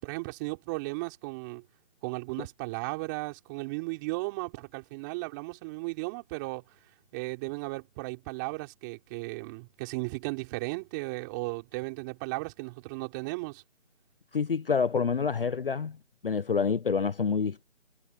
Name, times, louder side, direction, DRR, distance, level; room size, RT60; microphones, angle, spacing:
voice 1, 0.0-1.6 2.0-6.6 7.1-13.6, right 26 dB, 15° right, 5.3 m, -35 dB
voice 2, 14.3-16.0 16.2-17.6, left 5 dB, 45° left, 0.8 m, -27 dB
figure-of-eight pair, 165°, 37 cm